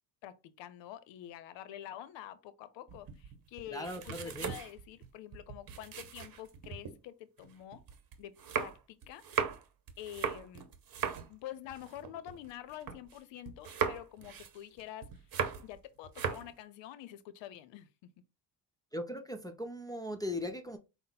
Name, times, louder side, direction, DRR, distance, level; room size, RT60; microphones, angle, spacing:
voice 1, 0.2-7.8 8.2-9.2 10.0-10.7 11.3-15.1 15.6-18.1, left 12 dB, 75° left, 0.6 m, -47 dB
sound 1, 2.9-6.9 7.4-13.2 13.5-15.8 16.0-16.5, right 7 dB, 50° right, 1.0 m, -38 dB
voice 2, 3.7-4.5 18.9-20.8, left 1 dB, 10° left, 0.6 m, -39 dB
5.5 x 2.0 x 3.9 m
supercardioid pair, 75°, 45 cm